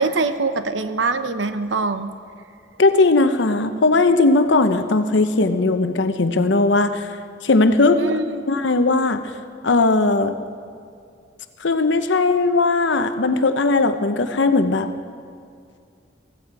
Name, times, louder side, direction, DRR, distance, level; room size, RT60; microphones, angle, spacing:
voice 1, 0.0-2.1 8.0-8.4, right 3 dB, 80° right, 10 dB, 0.8 m, -23 dB
voice 2, 2.8-7.1 7.4-8.0 8.5-9.3 9.6-10.4 11.6-14.9, left 3 dB, 75° left, 9 dB, 0.8 m, -18 dB
15.5 x 15.5 x 4.8 m, 2.3 s
head